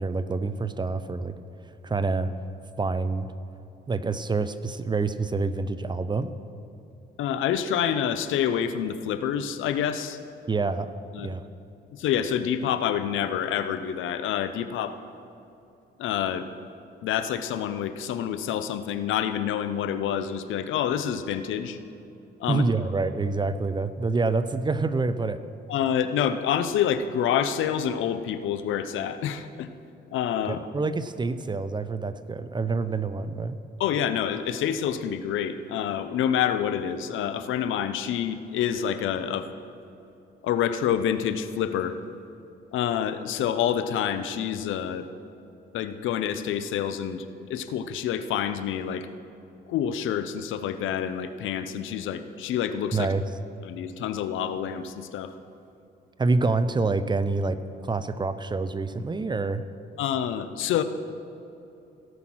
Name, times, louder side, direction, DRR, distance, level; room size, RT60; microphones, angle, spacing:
voice 1, 0.0-1.4 1.8-2.3 2.8-3.3 3.9-6.3 10.5-10.9 11.2-11.4 22.5-25.4 30.5-33.6 52.9-53.2 56.2-59.6, right 3 dB, 20° right, 12 dB, 0.5 m, -27 dB
voice 2, 7.2-10.2 11.1-11.3 11.9-15.0 16.0-16.5 17.0-21.8 22.4-22.6 25.7-29.7 30.1-30.6 33.8-39.5 40.4-42.0 42.7-45.1 45.7-47.2 47.5-49.1 49.7-53.1 53.6-55.3 60.0-60.8, left 9 dB, 80° left, 11 dB, 0.7 m, -27 dB
17.0 x 5.9 x 6.2 m, 2.8 s
cardioid pair, 90°, 20 cm